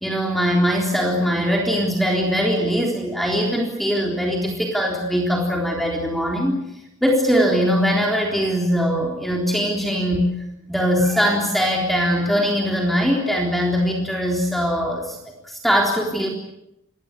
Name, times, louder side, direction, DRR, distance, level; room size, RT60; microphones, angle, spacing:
voice 1, 0.0-6.5 7.0-10.3 10.7-15.2 15.4-16.3, equal, ahead, 0 dB, 3.7 m, -21 dB
28.0 x 21.5 x 8.4 m, 0.86 s
head